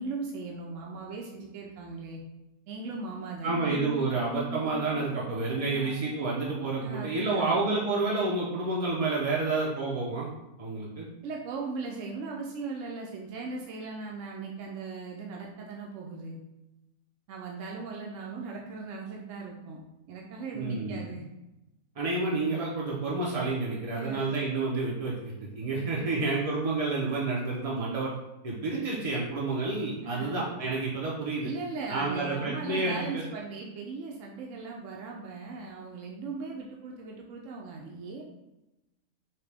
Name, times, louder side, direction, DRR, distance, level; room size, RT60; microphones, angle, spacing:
voice 1, 0.0-2.2 2.7-3.8 5.7-5.9 6.8-7.7 11.2-16.4 17.3-19.8 20.1-21.3 24.0-24.4 25.8-26.3 30.0-30.4 31.4-38.2, right 4 dB, 65° right, -1 dB, 0.8 m, -38 dB
sound 1, 3.4-8.7, right 2 dB, 30° left, 0.5 m, -44 dB
voice 2, 3.4-10.3 10.6-11.1 20.5-21.0 22.0-28.1 28.4-31.5 31.9-33.2, right 3 dB, 50° right, -4 dB, 0.4 m, -29 dB
5.6 x 2.2 x 3.3 m, 0.97 s
omnidirectional pair, 1.6 m